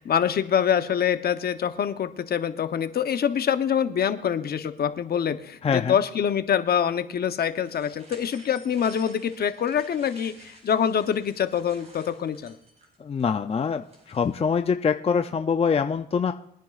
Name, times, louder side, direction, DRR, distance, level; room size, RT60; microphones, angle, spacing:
voice 1, 0.0-12.6, left 8 dB, 50° left, 10 dB, 0.9 m, -25 dB
voice 2, 5.6-6.0 13.0-16.3, left 6 dB, 30° left, 7 dB, 0.5 m, -24 dB
sound 1, 7.6-14.5, right 1 dB, 35° right, 4.6 m, -51 dB
22.0 x 10.0 x 2.5 m, 0.71 s
cardioid pair, 90°, 20 cm